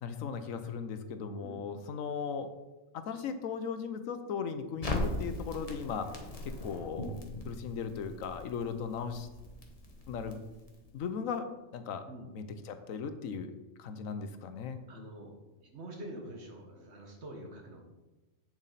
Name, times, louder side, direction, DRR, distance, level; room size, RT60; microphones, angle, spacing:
voice 1, 0.0-2.5 2.9-6.1 6.4-7.2 7.4-9.3 10.1-10.4 10.9-12.0 12.3-13.5 13.8-14.8, left 6 dB, 85° left, 9 dB, 1.2 m, -37 dB
Crackle, 4.8-11.0, left 1 dB, 30° left, 1.1 m, -40 dB
voice 2, 14.9-17.9, right 1 dB, 55° right, 2 dB, 1.7 m, -46 dB
7.8 x 7.3 x 4.1 m, 1.1 s
omnidirectional pair, 1.3 m